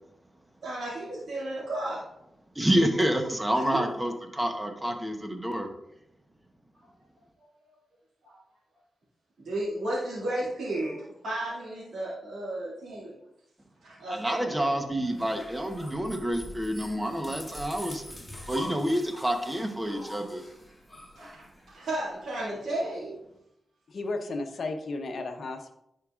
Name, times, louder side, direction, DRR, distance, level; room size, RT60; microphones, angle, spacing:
voice 1, 0.6-2.1 3.6-3.8 7.4-7.5 8.2-8.4 9.4-13.2 13.8-14.7 21.1-23.2, right 1 dB, 85° right, -10 dB, 2.5 m, -34 dB
voice 2, 2.5-5.7 14.1-18.0 18.5-20.5, equal, 15° right, 5 dB, 1.0 m, -28 dB
sound 1, 15.0-22.0, left 1 dB, 10° left, 2.4 m, -44 dB
voice 3, 23.9-25.8, left 3 dB, 65° left, 5 dB, 0.8 m, -34 dB
10.5 x 4.7 x 2.5 m, 0.80 s
cardioid pair, 75°, 0 cm